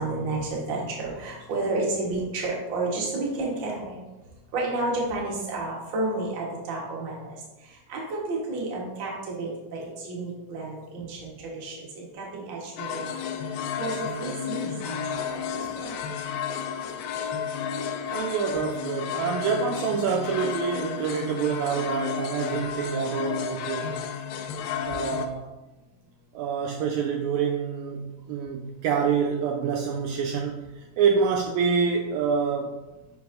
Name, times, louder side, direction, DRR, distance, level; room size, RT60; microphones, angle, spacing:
voice 1, 0.0-4.0 4.5-13.1 13.5-16.0 24.9-25.0, right 2 dB, 55° right, -3 dB, 1.4 m, -31 dB
sound 1, 12.8-25.3, left 7 dB, 85° left, 2.3 m, -32 dB
voice 2, 18.0-24.0 24.8-25.5 26.3-32.8, right 6 dB, 85° right, 2 dB, 1.6 m, -27 dB
6.9 x 5.3 x 2.6 m, 1.1 s
omnidirectional pair, 3.9 m